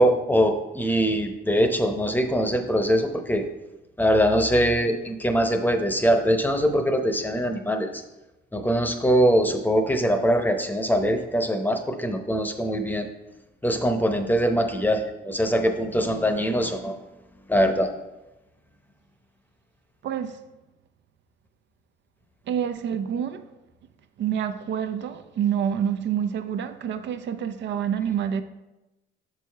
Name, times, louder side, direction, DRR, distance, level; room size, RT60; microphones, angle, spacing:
voice 1, 0.0-3.5 4.0-8.0 8.5-13.1 13.6-17.0 17.5-17.9, equal, 10° left, 0.7 m, -22 dB
voice 2, 20.0-20.4 22.5-23.4 24.2-28.4, right 8 dB, 65° right, 0.5 m, -27 dB
6.8 x 4.8 x 4.5 m
cardioid pair, 90°, 20 cm